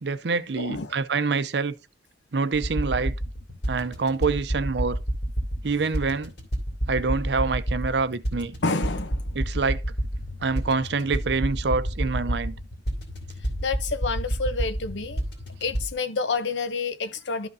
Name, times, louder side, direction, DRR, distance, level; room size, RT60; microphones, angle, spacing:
voice 1, 0.0-1.7 2.3-3.1 3.7-5.0 5.6-6.3 6.9-8.6 9.3-9.8 10.4-12.6, right 4 dB, 70° right, 0.6 m, -26 dB
voice 2, 0.6-1.0 8.6-9.3 13.6-15.2 15.6-17.5, left 4 dB, 90° left, 0.8 m, -28 dB
sound 1, 2.5-15.9, equal, 65° left, 2.6 m, -29 dB
12.5 x 5.4 x 2.7 m
head